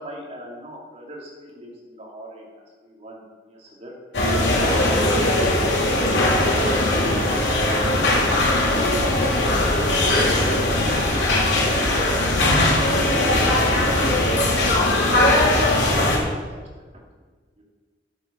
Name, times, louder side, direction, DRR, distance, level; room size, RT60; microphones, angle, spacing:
voice 1, 0.0-2.5 2.8-3.9 4.4-7.2 9.1-9.5 9.9-13.0 13.2-16.3 16.6-16.9, equal, 35° right, -2 dB, 2.6 m, -39 dB
sound 1, 4.1-16.2, left 1 dB, 90° left, 2.9 m, -19 dB
12.5 x 7.5 x 5.4 m, 1.4 s
head